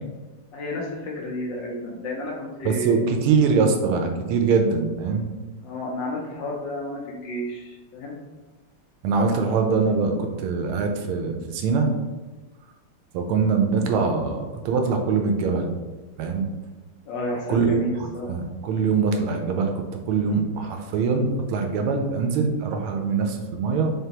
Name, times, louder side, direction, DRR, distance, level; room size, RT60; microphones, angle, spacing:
voice 1, 0.5-3.0 5.6-8.2 17.1-18.4, left 1 dB, 70° left, -2 dB, 1.2 m, -31 dB
voice 2, 2.6-5.3 9.0-11.9 13.1-15.7 16.2-16.5 17.5-23.9, right 5 dB, 80° right, 4 dB, 1.5 m, -23 dB
3.8 x 3.3 x 2.8 m, 1.2 s
omnidirectional pair, 2.4 m